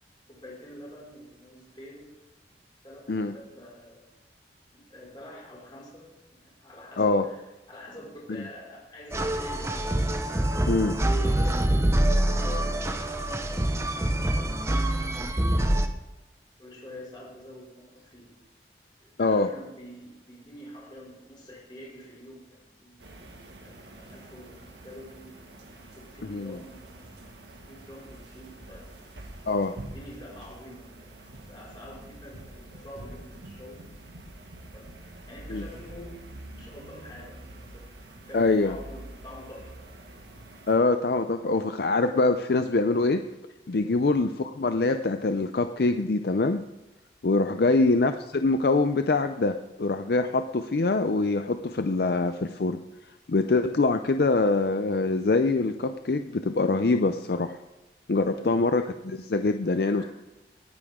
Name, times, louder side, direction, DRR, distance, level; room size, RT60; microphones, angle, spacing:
voice 1, 0.3-2.1 2.5-2.6 2.8-4.0 4.7-7.4 7.7-9.8 10.7-12.9 13.7-16.1 16.6-18.3 19.0-23.0 23.6-25.4 25.9-27.2 27.6-29.1 29.5-34.1 34.7-37.8 38.3-39.8 43.8-44.0 47.4-47.7 58.1-58.9 59.9-60.1, left 1 dB, 25° left, -5 dB, 5.3 m, -47 dB
sound 1, 9.1-15.9, right 1 dB, 15° right, 0.7 m, -25 dB
voice 2, 10.7-11.0 19.2-19.5 26.3-26.6 29.5-29.7 35.5-35.6 38.3-38.8 40.7-43.2 43.7-46.6 47.2-52.8 53.3-57.6 58.1-60.0, left 3 dB, 60° left, 8 dB, 0.5 m, -24 dB
sound 2, 23.0-40.8, right 1 dB, 80° right, 1.8 m, -46 dB
18.0 x 10.0 x 3.7 m, 1.1 s
head